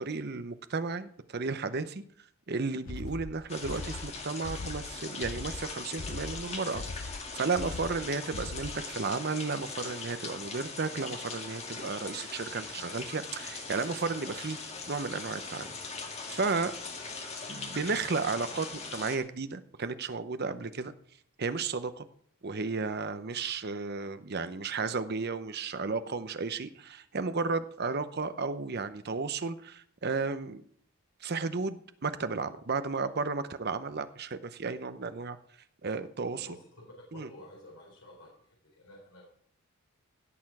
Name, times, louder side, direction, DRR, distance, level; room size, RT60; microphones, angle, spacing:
voice 1, 0.0-2.0 2.5-16.7 17.5-20.9 21.4-22.1 22.4-30.6 31.2-35.4 35.8-36.5 37.1-37.3, right 4 dB, 45° right, 11 dB, 0.7 m, -33 dB
sound 1, 2.9-8.9, left 3 dB, 60° left, 0.7 m, -41 dB
sound 2, 3.5-19.2, left 4 dB, 30° left, 1.8 m, -41 dB
voice 2, 36.2-39.3, left 1 dB, 75° left, -2 dB, 3.8 m, -51 dB
16.5 x 6.8 x 4.8 m, 0.64 s
head